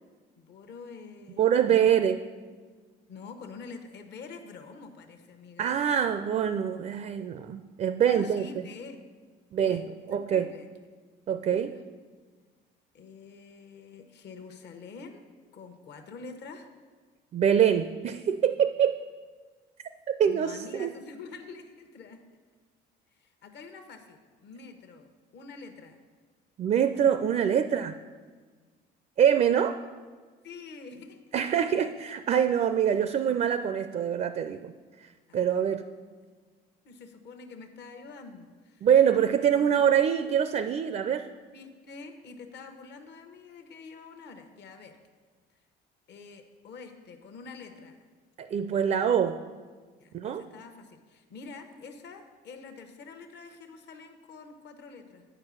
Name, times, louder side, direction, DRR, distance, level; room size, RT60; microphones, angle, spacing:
voice 1, 0.4-1.9 3.1-5.8 8.0-9.0 9.6-10.7 12.9-15.2 15.5-16.7 20.2-22.2 23.2-26.0 30.4-31.2 31.5-31.9 35.3-35.9 36.8-38.9 39.7-39.8 41.5-45.0 46.1-48.0 50.0-55.3, left 4 dB, 60° left, 7 dB, 1.0 m, -46 dB
voice 2, 1.4-2.2 5.6-8.7 9.5-10.5 11.3-11.8 17.3-19.0 20.1-20.9 26.6-27.9 29.2-29.8 31.3-34.7 35.3-35.9 38.8-41.3 48.4-49.4 50.1-50.5, right 8 dB, 40° right, 11 dB, 0.4 m, -25 dB
8.8 x 5.0 x 6.1 m, 1.5 s
supercardioid pair, 85°, 20 cm